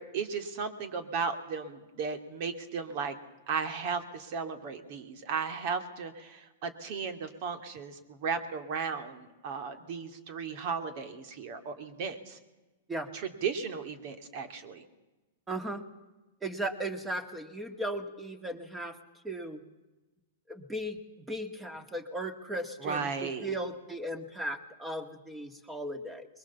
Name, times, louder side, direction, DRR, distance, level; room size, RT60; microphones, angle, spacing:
voice 1, 0.0-3.2 3.5-12.4 13.1-14.8 22.8-23.5, right 5 dB, 50° right, 8 dB, 2.4 m, -35 dB
voice 2, 15.5-15.8 16.4-19.0 19.2-19.6 20.5-21.0 21.3-26.3, right 1 dB, 10° right, 9 dB, 2.1 m, -36 dB
22.0 x 21.0 x 7.1 m, 1.1 s
hypercardioid pair, 130°, 0 cm